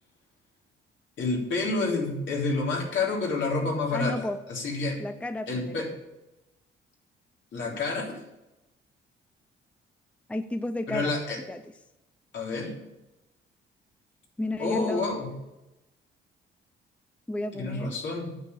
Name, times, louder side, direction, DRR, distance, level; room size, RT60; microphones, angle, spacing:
voice 1, 1.2-5.0 5.5-5.9 7.5-8.2 10.9-11.4 12.3-12.8 14.6-15.4 17.5-18.4, left 3 dB, 70° left, -2 dB, 3.6 m, -29 dB
voice 2, 3.9-4.4 5.0-5.9 10.3-11.1 11.5-11.6 14.4-15.1 17.3-17.9, left 1 dB, 5° left, 10 dB, 0.5 m, -32 dB
9.2 x 6.7 x 7.0 m, 0.95 s
cardioid pair, 90°, 20 cm